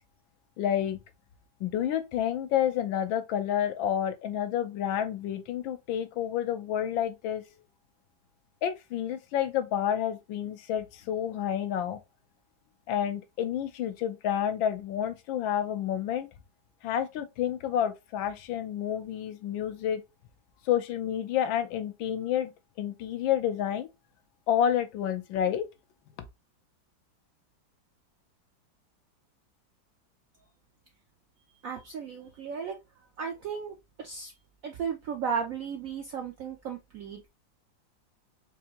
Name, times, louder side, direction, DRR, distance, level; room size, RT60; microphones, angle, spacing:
voice 1, 0.6-1.0 1.6-7.4 8.6-12.0 12.9-16.3 16.8-20.0 20.7-22.5 22.8-23.9 24.5-25.7, left 10 dB, 85° left, 1.4 m, -29 dB
voice 2, 31.6-34.3 34.6-37.3, right 6 dB, 75° right, 0.7 m, -35 dB
4.6 x 2.5 x 2.8 m
omnidirectional pair, 2.1 m